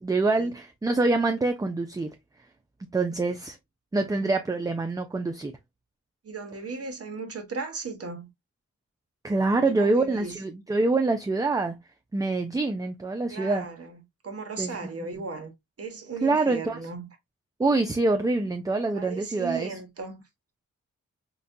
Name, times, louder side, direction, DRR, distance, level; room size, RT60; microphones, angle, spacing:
voice 1, 0.0-2.1 2.9-3.6 3.9-5.5 9.2-11.8 12.1-13.7 14.6-14.9 16.2-16.8 17.6-19.8, right 3 dB, 10° right, 0.3 m, -25 dB
voice 2, 6.2-8.3 9.5-10.4 13.3-15.5 15.8-17.1 18.9-20.2, right 4 dB, 45° right, 0.9 m, -36 dB
3.9 x 2.2 x 2.6 m
wide cardioid pair, 105°, 33 cm